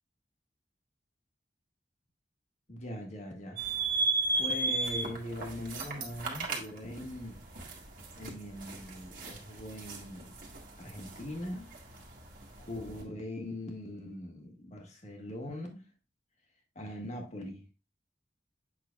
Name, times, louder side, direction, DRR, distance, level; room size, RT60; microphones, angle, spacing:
voice 1, 2.7-3.6 4.4-7.4 8.2-10.4 10.8-11.7 12.6-15.9 16.8-17.7, left 1 dB, 40° left, 1.7 m, -41 dB
sound 1, 3.6-13.0, right 3 dB, 50° right, 1.6 m, -36 dB
7.7 x 6.0 x 2.4 m
head